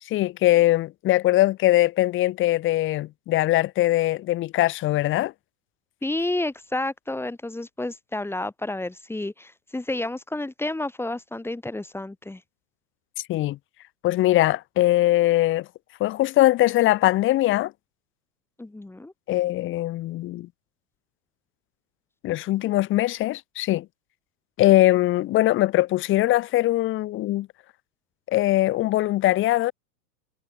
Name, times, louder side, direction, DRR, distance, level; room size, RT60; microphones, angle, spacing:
voice 1, 0.0-5.3 13.3-13.6 14.0-15.7 16.0-17.7 19.3-20.5 22.2-23.9 24.6-27.5 28.3-29.7, left 16 dB, 25° left, 1.0 m, -21 dB
voice 2, 6.0-12.4 18.6-19.1, left 2 dB, 5° left, 4.3 m, -30 dB
supercardioid pair, 140°, 49 cm